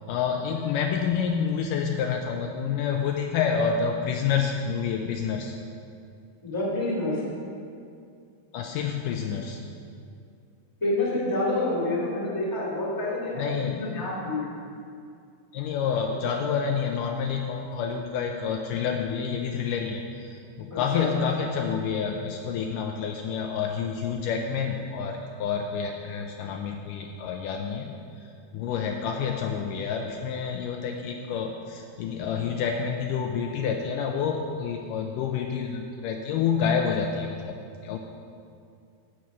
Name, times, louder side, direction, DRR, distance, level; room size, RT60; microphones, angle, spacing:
voice 1, 0.1-5.5 8.5-9.6 13.4-13.9 15.5-27.9 28.5-37.6 37.8-38.0, left 6 dB, 80° left, 2 dB, 2.0 m, -28 dB
voice 2, 6.4-7.2 10.8-14.5 20.7-21.1, left 2 dB, 10° left, -5 dB, 1.7 m, -28 dB
9.0 x 7.7 x 6.2 m, 2.4 s
omnidirectional pair, 4.0 m